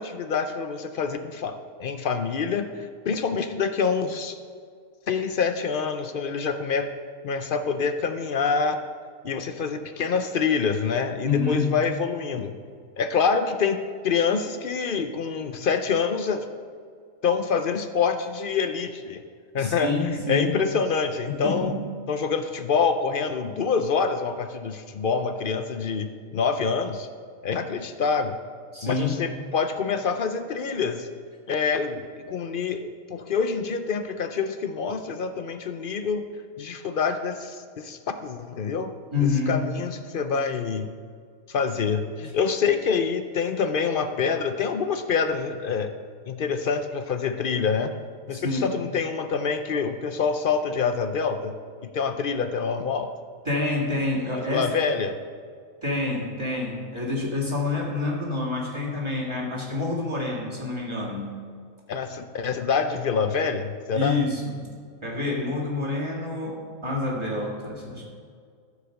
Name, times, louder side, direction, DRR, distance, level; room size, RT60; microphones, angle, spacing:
voice 1, 0.0-4.4 5.1-6.9 7.2-8.8 9.2-12.5 13.0-16.5 17.2-19.2 19.5-21.7 22.1-27.1 27.4-28.4 28.8-31.1 31.5-36.3 36.6-38.9 39.2-40.9 41.5-45.9 46.3-47.9 48.3-51.5 51.8-53.1 54.5-55.2 61.9-64.2, left 5 dB, 60° left, 8 dB, 0.6 m, -26 dB
voice 2, 11.2-11.8 19.6-20.6 21.3-21.8 28.7-29.2 39.1-39.8 48.3-48.8 53.5-54.7 55.8-61.3 63.9-64.8 65.0-68.1, left 3 dB, 20° right, -4 dB, 2.2 m, -27 dB
14.0 x 4.9 x 6.5 m, 2.1 s
omnidirectional pair, 1.5 m